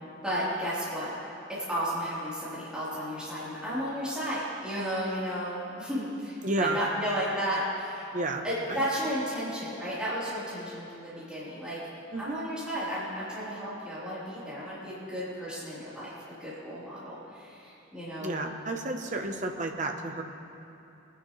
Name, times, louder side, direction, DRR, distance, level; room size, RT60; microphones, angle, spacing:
voice 1, 0.2-1.2 1.7-8.1 8.4-11.8 12.2-16.1 16.4-18.4, equal, 5° right, -12 dB, 3.7 m, -33 dB
voice 2, 6.4-6.8 8.1-8.8 12.1-12.4 18.2-20.2, right 2 dB, 40° right, 4 dB, 0.9 m, -31 dB
22.5 x 10.5 x 3.3 m, 2.8 s
head